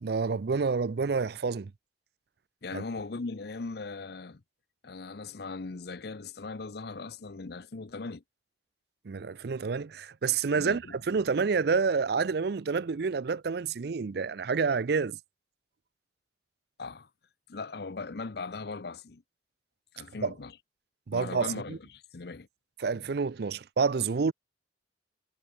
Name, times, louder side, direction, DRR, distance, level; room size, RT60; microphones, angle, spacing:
voice 1, 0.0-1.7 2.7-2.8 9.1-15.2 20.2-20.3 21.1-21.8 22.8-24.3, right 5 dB, 60° right, 0.5 m, -28 dB
voice 2, 2.6-4.4 4.8-8.2 10.5-11.0 16.8-17.1 17.5-19.2 19.9-20.6 21.1-22.5 22.9-23.1, left 3 dB, 60° left, 0.7 m, -39 dB
head